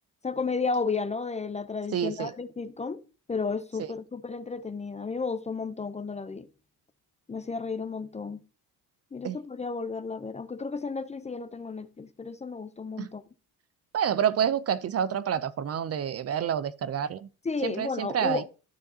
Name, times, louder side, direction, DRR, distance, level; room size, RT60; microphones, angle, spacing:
voice 1, 0.2-3.0 3.3-6.5 7.3-8.4 9.1-13.2 17.4-18.4, left 4 dB, 20° left, 0.5 m, -33 dB
voice 2, 1.9-2.3 3.8-3.9 9.2-9.4 13.0-13.1 13.9-17.3 17.6-18.4, right 8 dB, 40° right, 0.4 m, -28 dB
12.0 x 6.5 x 2.7 m
cardioid pair, 125°, 38 cm